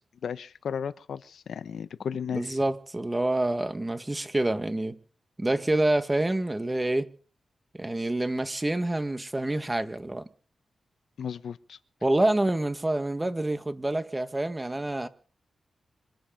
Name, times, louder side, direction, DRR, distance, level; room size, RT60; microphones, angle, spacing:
voice 1, 0.2-2.6 11.2-11.8, left 7 dB, 80° left, 0.8 m, -34 dB
voice 2, 2.3-5.0 5.4-7.1 7.7-10.3 12.0-15.1, right 1 dB, 20° right, 1.7 m, -27 dB
26.0 x 10.0 x 5.3 m
cardioid pair, 80°, 0 cm